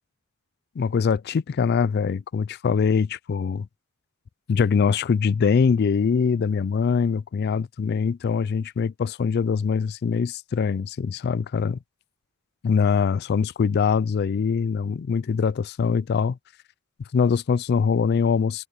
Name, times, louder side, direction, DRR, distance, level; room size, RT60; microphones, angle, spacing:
voice 1, 0.8-3.7 4.5-11.8 12.6-16.4 17.1-18.7, left 6 dB, 50° left, 0.3 m, -23 dB
head